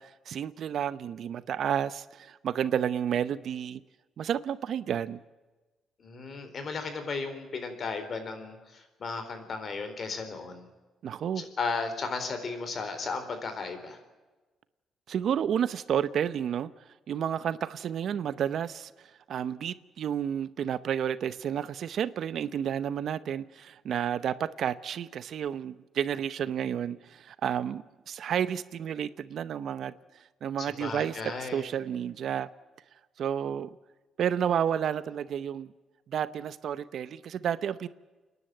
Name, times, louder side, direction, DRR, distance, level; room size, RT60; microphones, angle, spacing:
voice 1, 0.0-3.8 4.2-5.2 11.0-11.4 15.1-16.7 17.1-18.9 19.3-29.9 30.4-32.5 33.2-33.7 34.2-35.7 36.1-37.9, right 9 dB, 65° right, 0.8 m, -31 dB
voice 2, 6.0-10.7 11.4-14.0 30.6-31.6, left 4 dB, 50° left, 4.0 m, -35 dB
28.5 x 11.0 x 9.1 m
cardioid pair, 90°, 0 cm